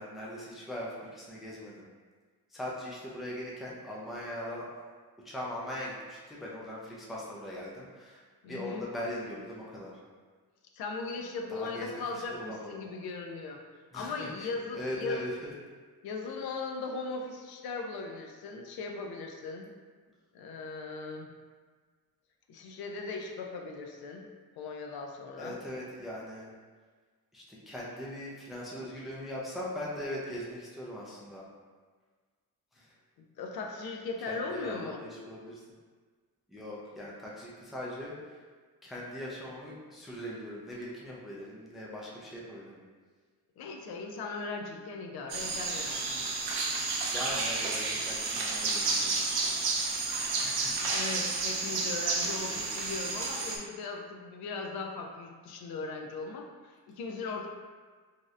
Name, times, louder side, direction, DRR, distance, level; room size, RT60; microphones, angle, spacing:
voice 1, 0.0-1.9 2.5-4.7 5.2-10.0 11.5-12.8 13.9-15.5 25.4-26.5 27.3-31.5 32.7-33.0 34.3-35.6 36.5-38.4 38.8-42.8 47.1-49.2 50.4-51.2 52.2-52.7, left 1 dB, ahead, -5 dB, 0.3 m, -40 dB
voice 2, 8.4-8.8 10.7-13.6 13.9-15.3 16.0-19.7 20.3-21.3 22.5-24.3 24.6-25.6 33.2-35.0 43.6-46.1 50.9-57.5, left 3 dB, 80° left, 2 dB, 0.5 m, -38 dB
sound 1, 45.3-53.6, right 3 dB, 85° right, 0.6 m, -31 dB
3.1 x 2.7 x 2.4 m, 1.5 s
wide cardioid pair, 165°, 37 cm